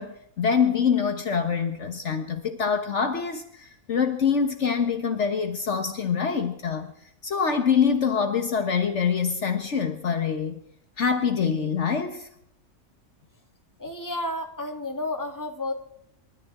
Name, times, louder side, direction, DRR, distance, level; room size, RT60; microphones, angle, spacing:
voice 1, 0.0-6.9 7.2-10.6 11.0-12.3, left 6 dB, 60° left, 7 dB, 1.4 m, -25 dB
voice 2, 13.8-15.7, left 1 dB, 15° left, 4 dB, 1.9 m, -31 dB
28.0 x 13.0 x 3.7 m, 0.74 s
omnidirectional pair, 1.4 m